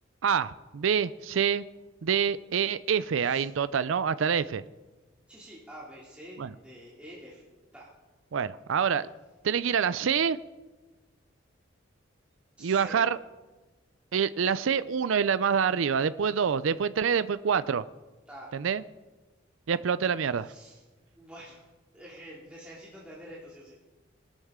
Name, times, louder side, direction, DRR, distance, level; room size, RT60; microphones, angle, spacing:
voice 1, 0.2-1.6 2.0-4.6 6.4-6.5 8.3-9.1 9.4-10.4 12.6-13.2 14.1-17.8 18.5-18.8 19.7-20.5, right 7 dB, 75° right, 15 dB, 0.4 m, -26 dB
voice 2, 5.3-7.5 7.7-7.9 12.6-13.1 18.3-18.5 20.4-20.8 21.1-21.6 21.9-23.7, equal, 5° right, -7 dB, 2.6 m, -47 dB
19.5 x 13.0 x 3.7 m, 1.2 s
head